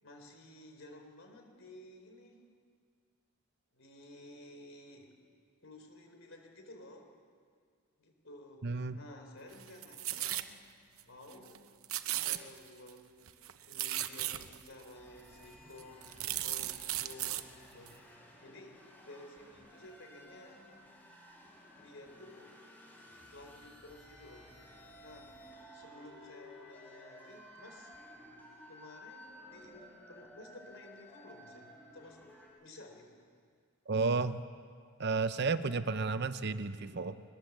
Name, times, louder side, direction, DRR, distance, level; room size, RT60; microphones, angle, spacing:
voice 1, 0.0-2.4 3.7-5.1 5.6-7.1 8.0-8.7 8.9-10.5 11.1-11.6 12.2-17.9 18.4-20.6 21.7-22.6 23.3-24.5 25.0-25.3 25.7-28.0 28.7-32.3 32.6-33.2, left 1 dB, 65° left, 3 dB, 4.3 m, -53 dB
voice 2, 8.6-9.0 33.9-34.4 35.0-37.2, right 4 dB, 50° right, 12 dB, 0.8 m, -32 dB
sound 1, 9.5-10.5 11.0-11.1 11.3-11.6 11.8-12.9 13.3-14.7 15.3-15.4 15.8-17.4 17.9-18.0, right 13 dB, 80° right, 0.9 m, -36 dB
sound 2, 14.9-32.5, left 1 dB, 10° left, 5.9 m, -55 dB
22.0 x 21.0 x 7.5 m, 2.1 s
head